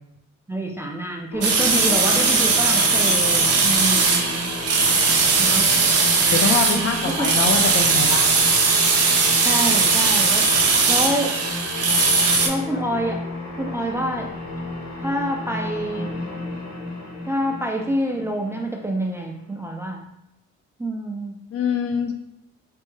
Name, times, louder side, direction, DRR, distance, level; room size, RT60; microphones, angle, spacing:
voice 1, 0.5-4.5 5.4-5.8 6.7-7.3 9.4-11.4 12.4-13.2 13.6-14.3 15.0-16.1 17.3-20.1 20.8-21.4, right 1 dB, 10° right, 0 dB, 0.4 m, -27 dB
sound 1, 1.3-19.6, left 2 dB, 85° left, 1.1 m, -33 dB
sound 2, 1.4-12.5, right 4 dB, 55° right, 0.6 m, -19 dB
voice 2, 6.3-8.3 21.5-22.1, left 5 dB, 50° left, 4 dB, 0.5 m, -24 dB
3.4 x 2.0 x 3.1 m, 0.82 s
cardioid pair, 90°, 30 cm